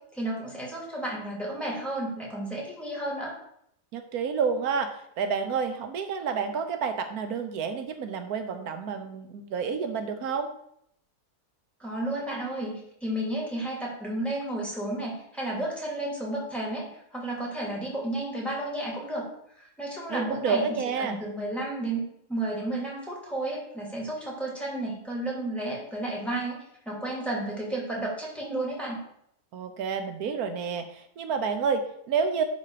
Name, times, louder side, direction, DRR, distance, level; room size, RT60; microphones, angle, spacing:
voice 1, 0.1-3.4 11.8-19.3 19.6-20.6 21.0-26.6 26.8-29.0, right 1 dB, ahead, -4 dB, 2.9 m, -32 dB
voice 2, 3.9-10.5 20.1-21.2 29.5-32.4, right 5 dB, 85° right, 8 dB, 1.3 m, -29 dB
11.5 x 4.1 x 4.9 m, 0.73 s
omnidirectional pair, 1.5 m